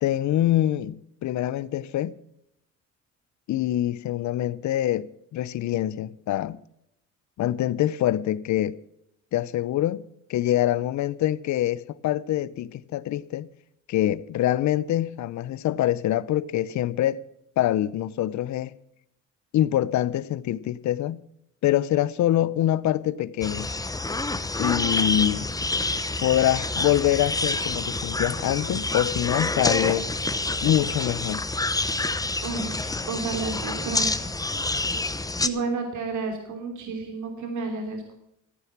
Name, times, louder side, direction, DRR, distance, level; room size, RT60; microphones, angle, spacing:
voice 1, 0.0-2.2 3.5-6.6 7.4-8.8 9.3-10.0 10.3-13.5 13.9-17.2 17.6-18.7 19.5-21.2 21.6-23.7 24.6-25.5 26.2-30.1 30.6-31.4, left 13 dB, 70° left, 0.7 m, -25 dB
sound 1, 23.4-35.5, left 2 dB, 10° left, 0.9 m, -27 dB
voice 2, 32.4-34.1 35.4-38.1, right 4 dB, 75° right, 3.1 m, -31 dB
14.0 x 9.5 x 7.2 m
cardioid pair, 90°, 30 cm